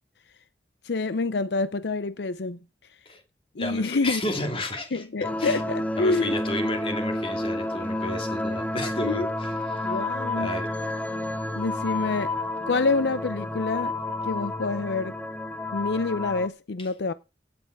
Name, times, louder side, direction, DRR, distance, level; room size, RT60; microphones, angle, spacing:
voice 1, 0.8-2.6 3.6-4.2 4.9-6.4 9.0-9.3 9.8-10.5 11.6-12.3 12.7-13.9 14.2-15.1 15.7-17.1, left 3 dB, 70° left, 0.6 m, -27 dB
voice 2, 3.6-5.0 5.4-5.6 6.0-9.8 10.3-10.7, left 1 dB, 30° left, 2.7 m, -32 dB
sound 1, 5.2-16.5, left 1 dB, 10° left, 0.7 m, -30 dB
16.5 x 7.8 x 4.7 m
head